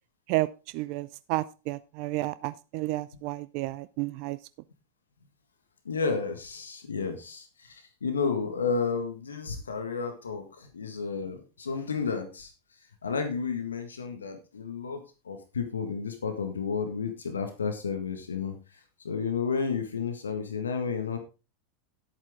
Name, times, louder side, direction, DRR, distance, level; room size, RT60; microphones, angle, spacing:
voice 1, 0.3-4.4, right 19 dB, 55° right, 16 dB, 0.5 m, -31 dB
voice 2, 5.8-12.5 13.0-18.5 19.0-21.2, left 5 dB, 85° left, 7 dB, 1.6 m, -32 dB
11.0 x 8.5 x 3.7 m, 0.31 s
hypercardioid pair, 90°, 0 cm